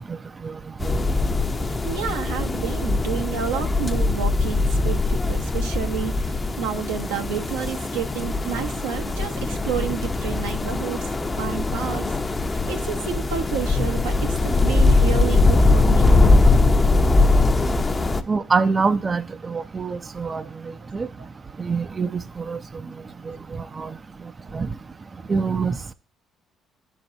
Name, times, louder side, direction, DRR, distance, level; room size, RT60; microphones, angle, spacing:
sound 1, 0.8-18.2, left 3 dB, 25° left, 0.7 m, -21 dB
voice 1, 1.7-11.1 11.4-12.0 12.5-16.2, right 8 dB, 80° right, 0.8 m, -30 dB
voice 2, 18.3-20.4 20.9-21.1 21.6-22.6 23.8-23.9 24.5-24.7 25.3-25.8, right 4 dB, 35° right, 0.4 m, -24 dB
12.0 x 4.5 x 2.7 m
hypercardioid pair, 50°, 0 cm